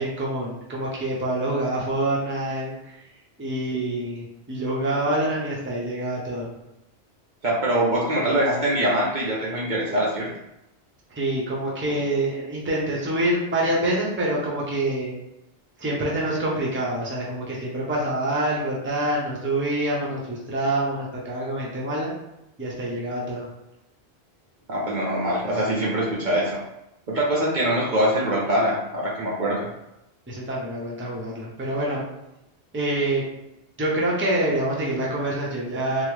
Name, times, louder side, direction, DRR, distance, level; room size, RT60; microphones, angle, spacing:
voice 1, 0.0-3.0 3.4-6.5 11.1-15.1 15.8-22.1 22.6-23.5 30.3-32.0 32.7-33.2 33.8-36.0, right 1 dB, 15° right, -4 dB, 0.6 m, -26 dB
voice 2, 7.4-10.3 24.7-26.6 27.1-29.7, right 1 dB, 55° right, -5 dB, 0.7 m, -23 dB
3.6 x 2.1 x 3.1 m, 0.87 s
omnidirectional pair, 1.1 m